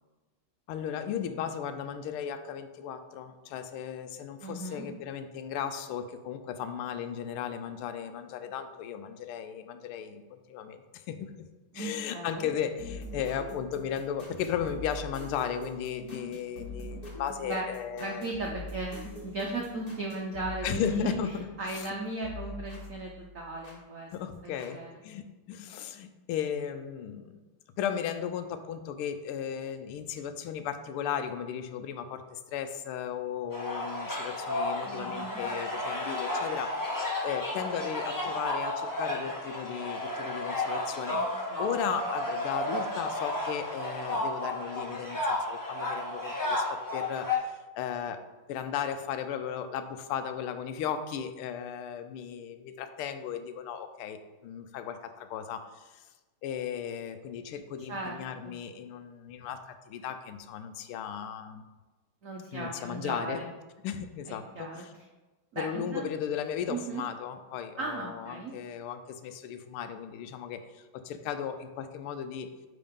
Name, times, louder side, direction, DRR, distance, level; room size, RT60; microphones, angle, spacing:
voice 1, 0.7-11.5 11.7-18.3 20.6-21.5 21.7-21.8 24.1-27.3 27.8-48.2 48.5-56.0 56.4-61.6 62.5-63.4 63.8-64.9 65.6-72.5, left 8 dB, 85° left, 9 dB, 1.5 m, -36 dB
voice 2, 4.4-4.9 11.7-12.5 17.4-17.6 18.0-21.1 21.6-24.1 24.4-25.0 34.8-35.4 41.1-41.2 41.5-41.7 57.9-58.2 58.4-58.5 62.2-63.4 64.3-65.1 65.5-66.1 66.7-67.0 67.8-68.5, right 2 dB, 80° right, -1 dB, 0.7 m, -37 dB
sound 1, 12.8-21.9 22.2-23.8 24.6-24.7, left 1 dB, 45° left, 2.2 m, -44 dB
sound 2, 33.5-47.4, left 2 dB, 25° left, 0.4 m, -33 dB
9.1 x 3.8 x 3.6 m, 1.2 s
omnidirectional pair, 2.4 m